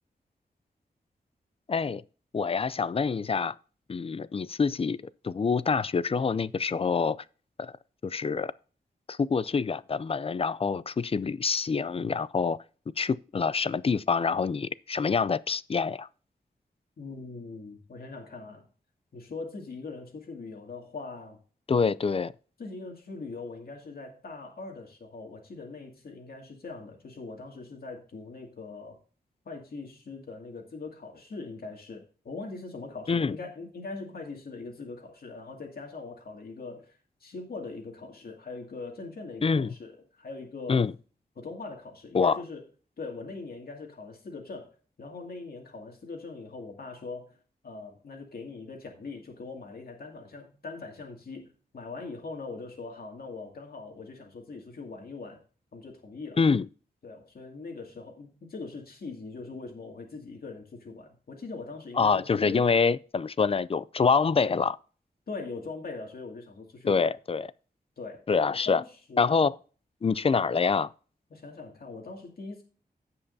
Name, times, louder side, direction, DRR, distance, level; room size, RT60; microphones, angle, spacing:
voice 1, 1.7-2.0 2.3-3.6 3.9-5.0 5.2-7.2 7.6-7.7 8.0-8.5 9.1-12.6 13.0-16.1 21.7-22.3 33.1-33.4 39.4-39.7 40.7-40.9 42.1-42.4 56.4-56.7 61.9-64.8 66.9-67.5 68.3-68.8 69.2-69.6 70.0-70.9, left 5 dB, 35° left, 0.4 m, -26 dB
voice 2, 17.0-18.7 19.1-21.4 22.6-29.0 29.5-40.8 41.4-42.6 43.0-44.7 45.0-47.4 47.6-55.4 55.7-56.4 57.0-62.7 65.3-67.1 68.0-68.2 68.5-69.5 71.3-72.6, left 3 dB, 65° left, 2.3 m, -41 dB
16.5 x 5.5 x 2.7 m
wide cardioid pair, 110°, 17 cm